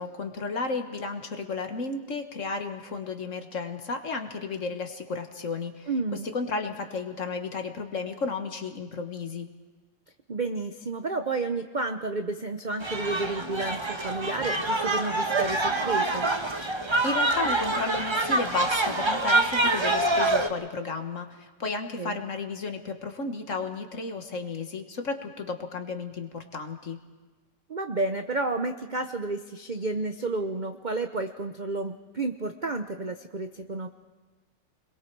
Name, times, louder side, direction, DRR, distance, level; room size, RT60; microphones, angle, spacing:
voice 1, 0.0-5.9 6.2-9.5 17.0-27.0, left 4 dB, 45° left, 7 dB, 1.6 m, -33 dB
voice 2, 5.9-6.3 10.3-16.3 22.0-22.2 27.7-33.9, right 3 dB, 50° right, 6 dB, 0.5 m, -31 dB
sound 1, 12.8-20.5, right 2 dB, 20° right, 0.9 m, -26 dB
29.5 x 22.0 x 4.7 m, 1.3 s
omnidirectional pair, 2.0 m